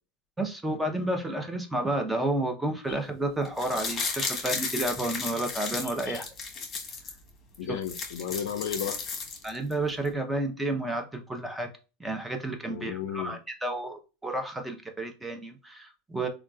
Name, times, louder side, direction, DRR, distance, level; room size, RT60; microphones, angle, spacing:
voice 1, 0.4-6.2 7.7-7.8 9.4-11.7 12.0-16.3, right 1 dB, 10° right, 0.8 m, -31 dB
sound 1, 3.4-7.1 7.5-7.6 7.8-9.7 10.1-10.2, left 5 dB, 35° left, 1.1 m, -34 dB
voice 2, 7.6-9.0 12.7-13.4, left 9 dB, 75° left, 0.4 m, -34 dB
3.5 x 2.4 x 2.3 m
hypercardioid pair, 90°, 0 cm